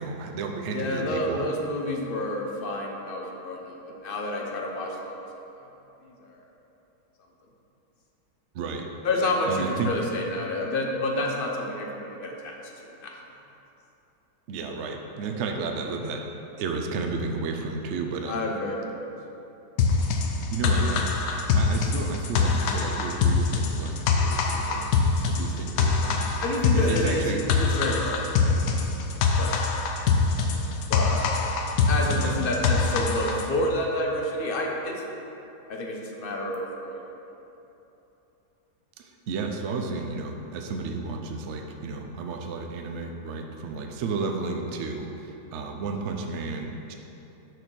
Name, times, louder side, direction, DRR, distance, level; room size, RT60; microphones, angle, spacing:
voice 1, 0.0-1.4 8.5-8.9 9.5-9.9 14.5-16.2 16.6-18.4 20.5-21.2 21.5-24.9 25.2-26.3 26.7-27.4 32.1-32.4 39.0-46.9, right 4 dB, 65° right, 3 dB, 0.7 m, -32 dB
voice 2, 0.7-5.1 5.6-5.7 6.0-6.4 9.0-12.6 12.8-13.2 18.3-19.0 26.4-28.7 28.9-29.7 30.4-30.5 30.9-31.3 31.9-35.1 35.7-37.0, left 1 dB, 45° left, 0 dB, 0.7 m, -29 dB
sound 1, 19.8-33.5, left 4 dB, 85° left, 1.3 m, -24 dB
6.7 x 4.2 x 6.2 m, 3.0 s
omnidirectional pair, 1.8 m